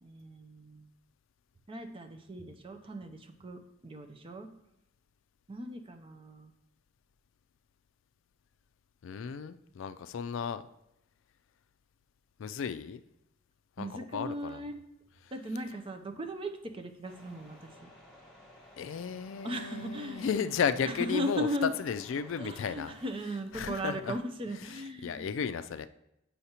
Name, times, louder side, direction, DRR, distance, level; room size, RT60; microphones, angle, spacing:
voice 1, 0.0-0.9 1.7-4.5 5.5-6.5 13.8-14.8 15.3-17.9 19.4-20.3 20.9-21.7 22.3-25.3, equal, 25° right, 5 dB, 0.6 m, -37 dB
voice 2, 9.0-10.6 12.4-13.0 13.8-14.6 15.2-15.3 18.8-22.9 23.5-24.2 24.6-25.9, left 7 dB, 70° left, 12 dB, 0.3 m, -34 dB
sound 1, 17.0-23.1, left 1 dB, ahead, 1.9 m, -55 dB
8.0 x 5.6 x 2.9 m, 0.84 s
head